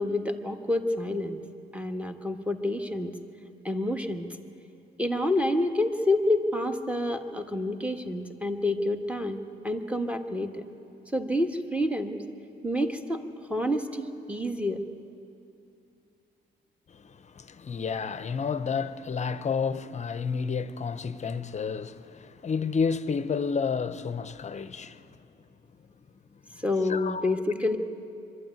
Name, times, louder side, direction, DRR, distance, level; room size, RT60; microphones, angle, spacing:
voice 1, 0.0-1.4 1.7-3.1 3.6-4.4 5.0-10.6 11.1-12.2 12.6-13.2 13.5-14.8 26.6-27.8, left 1 dB, 5° right, 1.5 m, -28 dB
voice 2, 16.9-25.2 26.4-27.4, left 5 dB, 35° left, 0.8 m, -31 dB
23.0 x 12.5 x 9.1 m
cardioid pair, 90°, 20 cm